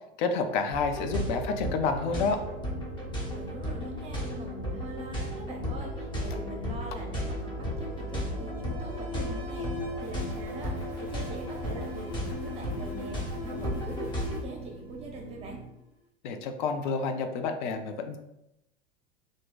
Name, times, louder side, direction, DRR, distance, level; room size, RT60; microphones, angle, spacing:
voice 1, 0.2-2.4 16.2-18.2, left 4 dB, 50° left, 7 dB, 0.4 m, -29 dB
sound 1, 0.7-14.4, left 1 dB, 15° left, 0.8 m, -35 dB
sound 2, 0.9-15.7, right 5 dB, 55° right, 0.5 m, -45 dB
voice 2, 3.3-15.6, right 2 dB, 20° right, 1 dB, 0.7 m, -43 dB
Alarm, 7.0-15.6, left 3 dB, 75° left, 1.4 m, -42 dB
2.5 x 2.2 x 3.7 m, 0.88 s
figure-of-eight pair, 80°, 31 cm